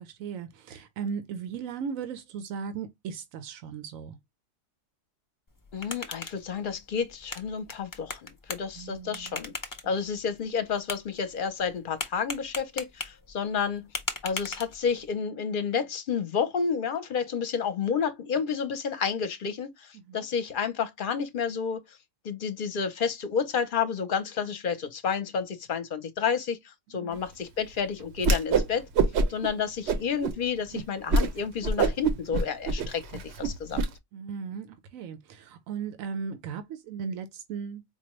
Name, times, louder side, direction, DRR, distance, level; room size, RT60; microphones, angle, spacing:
voice 1, 0.0-4.2 8.7-9.4 19.9-20.3 27.0-27.2 34.1-37.8, right 6 dB, 90° right, 1.1 m, -37 dB
sound 1, 5.5-15.1, left 3 dB, 30° left, 0.4 m, -40 dB
voice 2, 5.7-9.5 9.8-13.9 14.2-22.0 22.2-28.9 29.3-33.8, left 6 dB, 50° left, 0.7 m, -30 dB
Whoosh swoosh swish, 28.2-28.7 28.9-29.5 29.9-30.3 30.7-30.8 31.1-31.3 31.6-33.9, right 3 dB, 60° right, 0.8 m, -24 dB
4.5 x 2.2 x 2.9 m
omnidirectional pair, 1.4 m